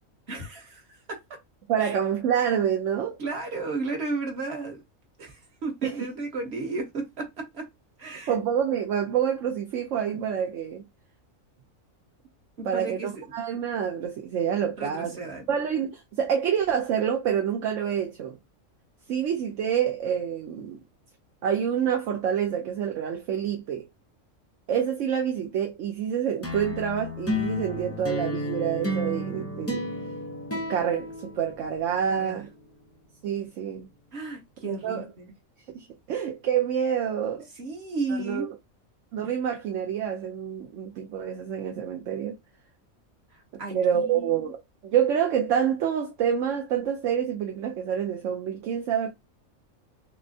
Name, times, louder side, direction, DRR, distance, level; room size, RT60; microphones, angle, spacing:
voice 1, 0.3-1.4 1.8-2.0 3.2-4.8 5.2-7.7 8.0-8.4 12.6-13.2 14.8-15.5 32.1-32.4 34.1-35.3 37.5-38.5 43.3-44.5, right 3 dB, 50° right, 1.4 m, -34 dB
voice 2, 1.7-3.2 5.8-6.0 8.3-10.8 12.6-15.2 15.5-18.4 19.1-20.8 21.4-23.9 24.7-29.9 30.7-32.5 33.2-33.9 34.6-35.1 35.7-37.5 38.1-38.5 39.1-42.4 43.5-49.1, right 8 dB, 65° right, 1.0 m, -27 dB
sound 1, 26.4-32.0, left 1 dB, 20° left, 0.4 m, -32 dB
6.0 x 2.1 x 2.7 m
omnidirectional pair, 1.4 m